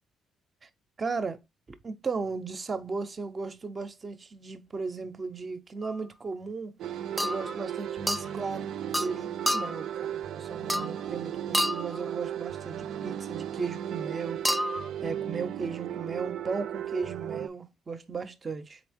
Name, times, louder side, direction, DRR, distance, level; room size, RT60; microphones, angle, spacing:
voice 1, 1.0-1.4 1.8-6.8 7.2-8.7 9.0-14.4 15.0-18.8, right 4 dB, 35° right, 0.7 m, -36 dB
sound 1, 5.8-6.0 7.2-7.6 8.1-8.3 8.9-9.2 9.5-9.9 10.7-11.1 11.5-12.0 14.4-14.9, equal, ahead, 0.3 m, -29 dB
sound 2, 6.8-17.5, right 10 dB, 75° right, 0.5 m, -35 dB
4.0 x 3.4 x 3.4 m
cardioid pair, 90°, 0 cm